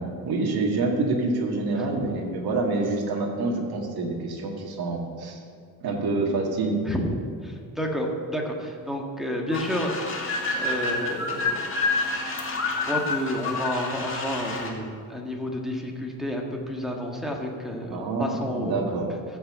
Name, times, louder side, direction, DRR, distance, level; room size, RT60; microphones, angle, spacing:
voice 1, 0.0-5.4 5.8-6.8 17.9-19.1, right 3 dB, 80° right, 0 dB, 2.0 m, -27 dB
voice 2, 6.9-10.3 10.6-11.7 12.6-18.9, equal, ahead, 0 dB, 1.6 m, -30 dB
sound 1, 9.5-14.7, left 3 dB, 35° left, 2.1 m, -28 dB
14.5 x 5.7 x 8.0 m, 2.3 s
cardioid pair, 140°, 37 cm